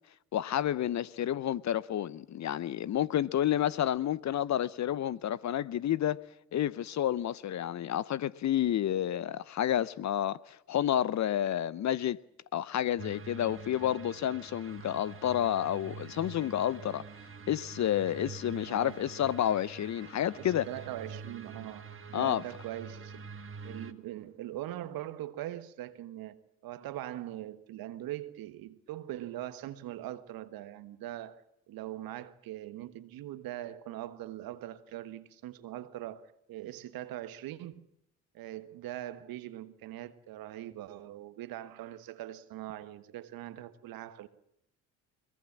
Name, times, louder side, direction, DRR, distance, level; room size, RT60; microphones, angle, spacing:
voice 1, 0.3-6.2 6.5-12.2 12.5-17.0 17.5-20.7 22.1-22.4, left 11 dB, 45° left, 0.8 m, -30 dB
sound 1, 13.0-23.9, right 5 dB, 35° right, 1.6 m, -46 dB
voice 2, 18.7-19.0 20.4-23.3 23.6-37.9 38.3-44.3, right 13 dB, 65° right, 1.4 m, -42 dB
23.0 x 20.0 x 7.5 m
hypercardioid pair, 55°, 38 cm